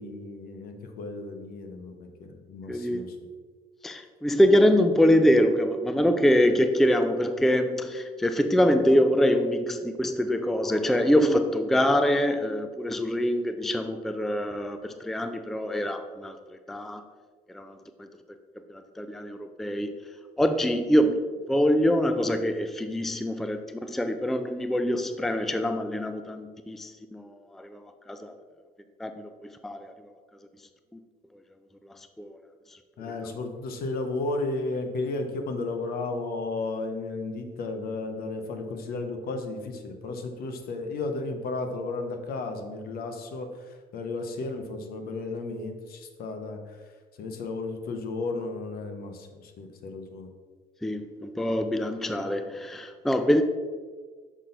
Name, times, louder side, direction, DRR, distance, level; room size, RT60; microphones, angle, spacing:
voice 1, 0.0-3.1 33.0-43.5 43.9-46.6 47.2-50.3, left 3 dB, 65° left, 6 dB, 1.0 m, -33 dB
voice 2, 2.7-3.1 3.8-17.0 17.5-18.1 18.7-19.9 20.4-21.2 21.5-28.3 29.0-29.9 30.9-31.0 31.9-32.3 33.0-33.4 50.8-53.4, equal, ahead, 8 dB, 0.4 m, -25 dB
6.2 x 5.6 x 4.0 m, 1.5 s
cardioid pair, 110°, 17 cm